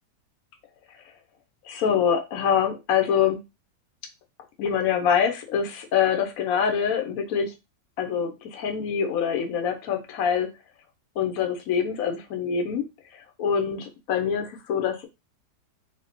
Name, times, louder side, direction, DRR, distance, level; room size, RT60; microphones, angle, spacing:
voice 1, 1.6-3.4 4.6-7.5 8.0-10.5 11.2-12.8 13.4-15.0, left 7 dB, 60° left, 4 dB, 1.1 m, -25 dB
4.3 x 2.3 x 3.8 m, 0.25 s
omnidirectional pair, 1.8 m